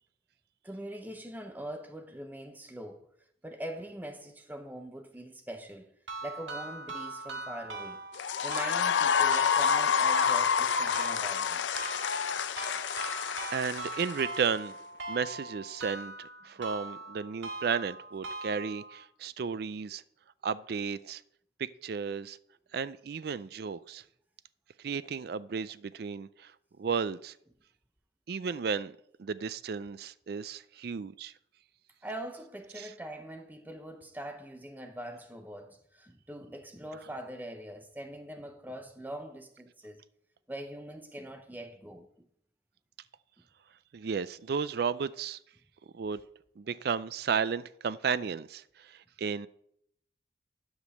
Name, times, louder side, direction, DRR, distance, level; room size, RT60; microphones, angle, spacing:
voice 1, 0.6-3.1 3.4-5.9 6.2-8.0 8.4-11.6 32.0-40.0 40.5-42.1, right 1 dB, 10° right, 0.7 m, -43 dB
sound 1, 6.1-19.0, right 2 dB, 90° right, 1.8 m, -41 dB
sound 2, 8.1-14.5, left 7 dB, 85° left, 0.5 m, -28 dB
voice 2, 12.7-13.2 13.5-14.7 15.1-20.0 20.4-21.2 21.6-22.4 22.7-24.0 24.8-26.5 26.8-27.4 28.3-28.9 29.2-31.3 32.7-32.9 43.9-45.4 45.9-46.2 46.6-49.5, right 6 dB, 55° right, 0.4 m, -34 dB
11.5 x 5.2 x 6.4 m
head